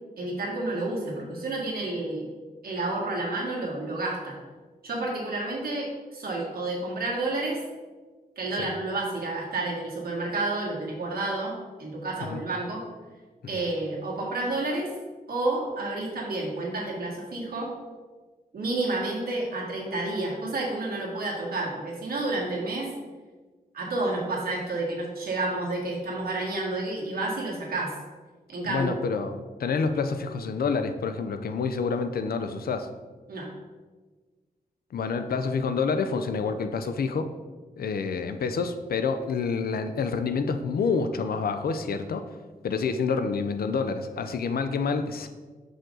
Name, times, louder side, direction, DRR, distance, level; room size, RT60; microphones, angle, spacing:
voice 1, 0.2-2.3 2.6-4.4 4.8-7.6 8.4-12.8 13.5-14.9 15.3-17.7 18.5-22.9 23.7-27.9 28.5-28.9 33.3-33.5, right 2 dB, 85° right, -3 dB, 1.7 m, -30 dB
voice 2, 28.7-32.9 34.9-37.3 37.8-42.3 42.6-45.3, left 5 dB, 85° left, 8 dB, 0.5 m, -28 dB
6.3 x 5.0 x 3.8 m, 1.3 s
wide cardioid pair, 125°, 15 cm